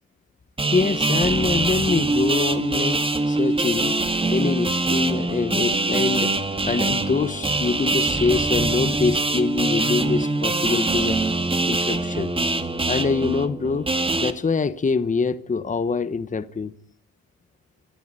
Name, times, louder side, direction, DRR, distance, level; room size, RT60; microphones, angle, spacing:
sound 1, 0.6-14.3, right 2 dB, 20° right, 2.2 m, -23 dB
voice 1, 0.7-4.0 4.3-6.3 6.6-11.2 11.7-12.3 12.9-13.9 14.2-16.7, left 4 dB, 25° left, 1.1 m, -24 dB
26.5 x 14.0 x 9.0 m
cardioid pair, 90°, 30 cm